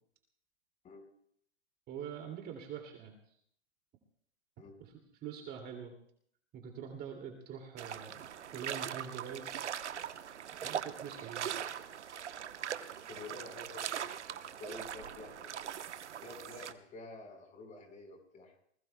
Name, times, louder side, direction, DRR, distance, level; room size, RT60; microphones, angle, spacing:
voice 1, 1.9-3.1 5.2-5.9 6.5-8.2 8.5-9.5 10.6-11.5, right 8 dB, 30° right, 2 dB, 2.6 m, -44 dB
sound 1, 7.8-16.7, right 9 dB, 85° right, 1.1 m, -41 dB
voice 2, 13.1-15.6 16.2-18.6, left 3 dB, 20° left, 4 dB, 4.8 m, -50 dB
27.5 x 20.5 x 2.3 m, 0.65 s
hypercardioid pair, 130°, 34 cm